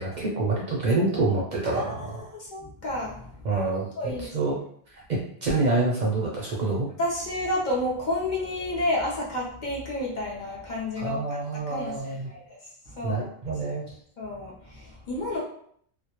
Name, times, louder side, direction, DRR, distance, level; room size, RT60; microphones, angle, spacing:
voice 1, 0.0-2.2 3.4-4.6 4.9-6.9 11.0-12.3 13.0-13.9, right 3 dB, 55° right, -3 dB, 0.5 m, -27 dB
voice 2, 2.3-3.3 4.0-4.5 7.0-11.2 11.5-12.6 12.9-13.3 14.2-15.4, left 1 dB, 50° left, -5 dB, 0.7 m, -30 dB
2.2 x 2.1 x 2.8 m, 0.64 s
omnidirectional pair, 1.1 m